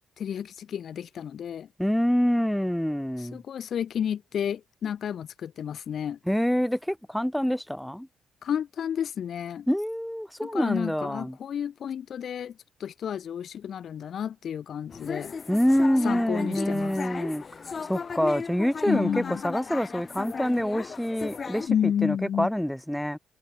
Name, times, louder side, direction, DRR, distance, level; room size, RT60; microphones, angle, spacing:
voice 1, 0.2-1.7 3.2-6.2 8.4-9.7 10.4-15.3 16.0-17.0 18.9-19.4 21.7-22.5, left 8 dB, 60° left, 0.8 m, -31 dB
voice 2, 1.8-3.4 6.3-8.1 9.7-11.4 15.5-17.4 17.8-23.2, equal, ahead, 0.3 m, -26 dB
sound 1, 14.9-21.7, left 5 dB, 40° left, 1.4 m, -35 dB
cardioid pair, 90°, 0 cm